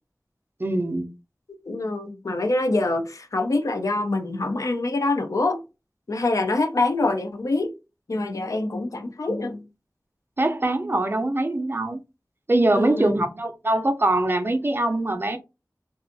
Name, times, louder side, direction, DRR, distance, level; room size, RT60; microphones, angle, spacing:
voice 1, 0.6-1.1 10.4-12.0 12.5-15.4, right 1 dB, 35° right, 0.4 m, -23 dB
voice 2, 1.7-5.6 6.1-7.7 8.1-9.7 12.7-13.1, left 2 dB, 60° left, 0.4 m, -25 dB
2.5 x 2.3 x 2.5 m
wide cardioid pair, 45°, 6 cm